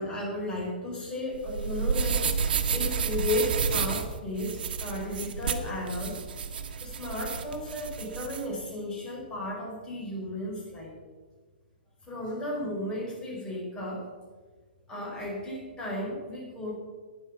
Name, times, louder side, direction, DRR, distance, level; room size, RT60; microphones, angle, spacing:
voice 1, 0.0-6.2 6.8-11.0 12.0-14.1 14.9-16.8, left 1 dB, 15° left, -3 dB, 5.0 m, -34 dB
sound 1, 1.3-8.4, right 6 dB, 65° right, 1.4 m, -30 dB
12.0 x 9.9 x 5.9 m, 1.4 s
hypercardioid pair, 140°, 5 cm